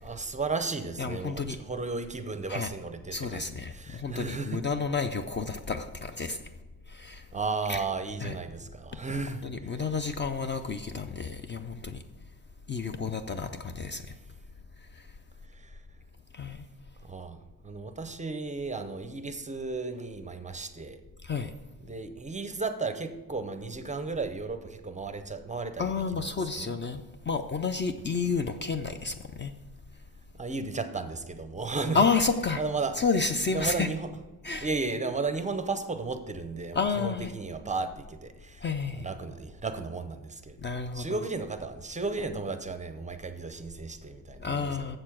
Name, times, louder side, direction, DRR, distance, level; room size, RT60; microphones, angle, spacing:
voice 1, 0.0-4.6 7.3-9.9 15.5-15.8 17.0-21.0 21.8-26.7 30.4-32.0 32.6-33.0 33.5-34.1 34.6-38.6 39.0-40.6 40.9-45.0, right 4 dB, 20° right, 9 dB, 0.5 m, -34 dB
voice 2, 1.0-1.6 2.5-2.7 3.1-6.4 6.9-7.3 7.7-7.8 8.2-8.4 9.4-12.0 12.7-14.0 14.9-15.0 16.3-16.6 21.2-21.5 25.8-29.5 31.9-32.6 32.9-33.9 34.4-34.7 36.7-37.3 38.6-39.1 40.6-41.3 44.4-45.0, left 4 dB, 30° left, 8 dB, 0.4 m, -30 dB
7.6 x 6.7 x 6.0 m, 1.2 s
wide cardioid pair, 155°, 37 cm